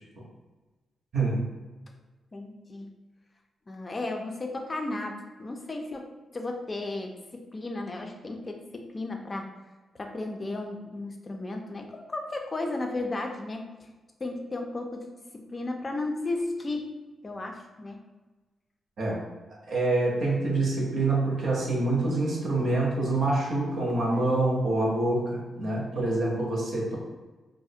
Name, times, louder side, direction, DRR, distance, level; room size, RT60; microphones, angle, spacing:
voice 1, 2.3-2.9 3.7-6.0 6.3-9.5 9.9-13.9 14.2-15.1 15.3-16.9 17.2-18.0, left 2 dB, 25° left, 3 dB, 0.3 m, -34 dB
voice 2, 19.7-27.0, right 2 dB, 65° right, -3 dB, 0.6 m, -26 dB
2.4 x 2.0 x 2.7 m, 1.2 s
cardioid pair, 115°, 0 cm